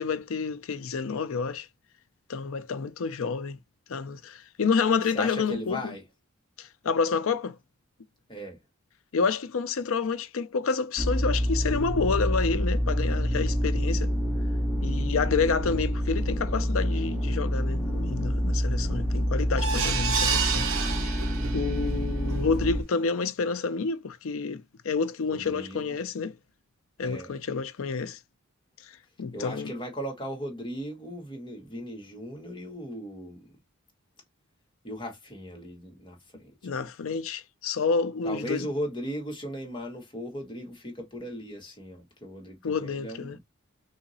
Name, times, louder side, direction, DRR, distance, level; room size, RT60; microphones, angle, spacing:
voice 1, 0.0-1.7 2.3-3.6 3.9-5.8 6.6-7.6 9.1-14.1 14.8-26.4 27.0-28.2 28.8-28.9 29.2-29.7 36.6-38.7 42.6-43.4, left 5 dB, 70° left, 0.5 m, -29 dB
voice 2, 5.1-6.0 8.3-8.6 25.3-26.0 27.0-27.4 29.3-33.5 34.8-36.9 38.2-43.4, equal, 20° left, 1.3 m, -37 dB
sound 1, 11.0-22.8, equal, ahead, 1.5 m, -27 dB
sound 2, 19.6-21.8 22.3-22.4 22.7-22.8, right 6 dB, 80° right, 1.0 m, -29 dB
3.9 x 2.8 x 2.7 m
head